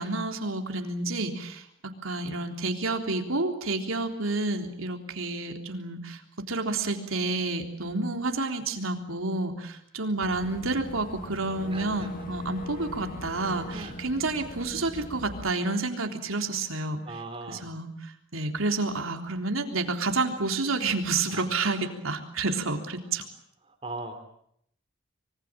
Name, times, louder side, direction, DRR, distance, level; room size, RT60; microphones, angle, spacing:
voice 1, 0.0-6.2 6.5-17.2 17.5-17.9 18.3-23.2, right 3 dB, 90° right, 4 dB, 3.6 m, -29 dB
Boat Water vehicle / Engine, 10.2-15.5, equal, 45° left, 1.5 m, -41 dB
voice 2, 11.7-12.1 13.7-13.9 17.1-17.6 21.3-21.5 23.8-24.2, right 2 dB, 25° right, 7 dB, 3.6 m, -38 dB
25.5 x 24.0 x 7.6 m, 0.71 s
head